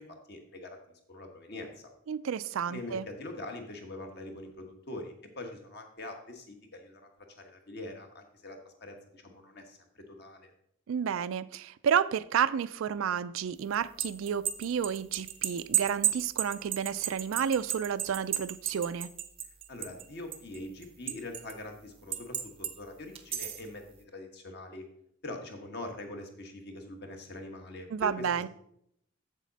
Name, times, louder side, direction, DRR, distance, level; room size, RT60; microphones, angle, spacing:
voice 1, 0.0-1.8 2.7-7.0 7.4-10.5 19.7-24.8 25.2-28.5, left 2 dB, 50° left, 1.3 m, -43 dB
voice 2, 2.1-3.1 10.9-19.1 27.9-28.5, right 7 dB, 75° right, 0.3 m, -31 dB
sound 1, 13.7-20.0 20.3-21.5 22.1-22.7 23.1-23.7, right 11 dB, 25° right, 0.6 m, -32 dB
7.4 x 7.3 x 4.1 m
head